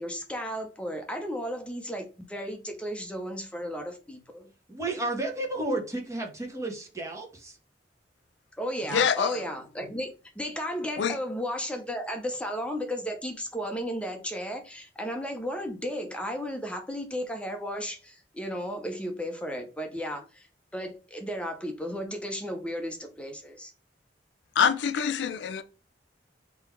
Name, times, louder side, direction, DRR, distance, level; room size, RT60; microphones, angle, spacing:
voice 1, 0.0-4.5 8.6-20.5 20.7-23.7, equal, 5° left, 0.6 m, -34 dB
voice 2, 4.7-7.6, right 2 dB, 15° right, 1.2 m, -32 dB
voice 3, 8.9-9.4 11.0-11.1 24.6-25.6, left 7 dB, 75° left, 0.4 m, -25 dB
3.8 x 2.9 x 4.4 m
head